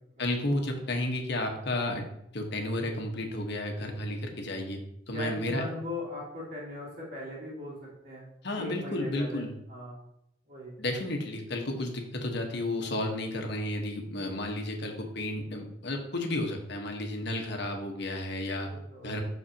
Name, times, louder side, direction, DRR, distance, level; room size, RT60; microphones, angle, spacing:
voice 1, 0.2-2.0 2.3-4.8 5.1-5.6 8.4-9.5 10.8-18.7 19.0-19.2, left 1 dB, 65° left, 3 dB, 1.3 m, -32 dB
voice 2, 5.1-8.2 8.5-9.4 9.7-10.0 10.5-10.7 18.7-19.2, left 1 dB, 40° right, -12 dB, 3.0 m, -39 dB
12.0 x 4.3 x 2.9 m, 0.78 s
head